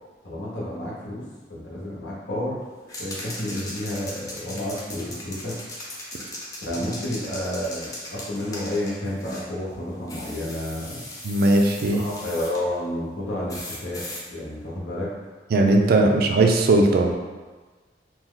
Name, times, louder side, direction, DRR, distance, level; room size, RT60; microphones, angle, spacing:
voice 1, 0.2-1.2 1.5-2.6 3.0-5.6 6.6-11.0 11.9-15.1, left 1 dB, 90° left, -6 dB, 1.0 m, -30 dB
Shaking spray box and spraying, 2.9-9.5 10.1-12.6 13.5-14.2, left 1 dB, 20° left, 0.6 m, -38 dB
voice 2, 11.2-12.0 15.5-17.1, right 2 dB, 60° right, 3 dB, 0.4 m, -18 dB
2.9 x 2.2 x 3.7 m, 1.3 s
head